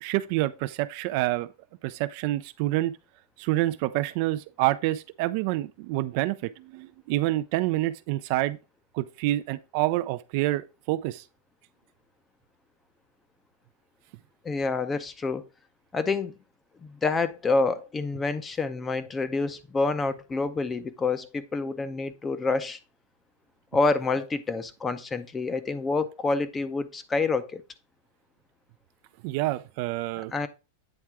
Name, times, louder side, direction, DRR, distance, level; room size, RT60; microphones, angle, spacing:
voice 1, 0.0-1.5 1.8-3.0 3.4-8.6 8.9-11.2 29.2-30.3, right 16 dB, 50° right, 0.4 m, -27 dB
voice 2, 14.4-15.4 15.9-16.3 16.8-22.8 23.7-27.6 30.3-30.5, left 3 dB, 15° left, 0.6 m, -27 dB
8.8 x 3.5 x 4.7 m
supercardioid pair, 150°, 0 cm